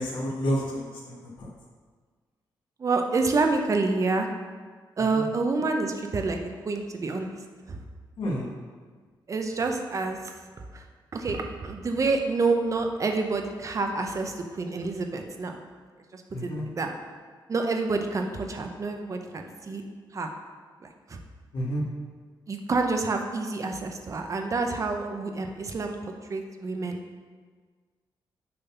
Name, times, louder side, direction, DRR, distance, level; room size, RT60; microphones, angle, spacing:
voice 1, 0.0-1.5 5.0-5.3 8.2-8.5 16.3-16.7 21.5-21.8, equal, 70° left, -4 dB, 1.5 m, -30 dB
voice 2, 2.8-4.3 5.0-6.4 6.6-7.3 7.7-7.8 9.3-10.3 10.7-10.8 11.1-15.6 16.1-16.5 16.8-16.9 17.5-19.8 20.1-20.3 20.8-21.2 22.5-27.0, right 3 dB, 40° right, 4 dB, 0.7 m, -28 dB
6.7 x 4.0 x 5.7 m, 1.5 s
cardioid pair, 115°, 9 cm